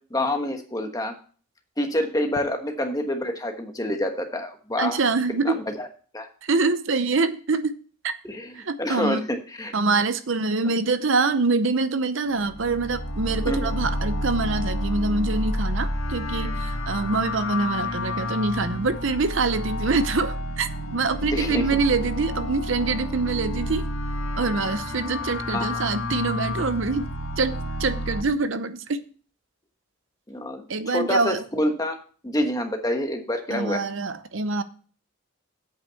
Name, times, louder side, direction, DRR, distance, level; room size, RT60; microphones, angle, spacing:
voice 1, 0.1-1.1 1.8-5.0 5.4-5.9 6.1-6.3 8.2-9.7 13.5-13.7 21.3-21.6 25.5-25.7 30.3-32.0 32.2-33.8, left 1 dB, 15° left, 1.2 m, -27 dB
voice 2, 4.8-5.6 6.4-7.7 8.0-8.1 8.6-9.2 9.7-23.9 24.4-27.1 27.4-29.0 30.7-31.4 33.5-34.6, right 3 dB, 60° right, 0.7 m, -25 dB
sound 1, 12.3-28.2, left 1 dB, 80° left, 1.8 m, -30 dB
8.4 x 5.8 x 6.9 m
head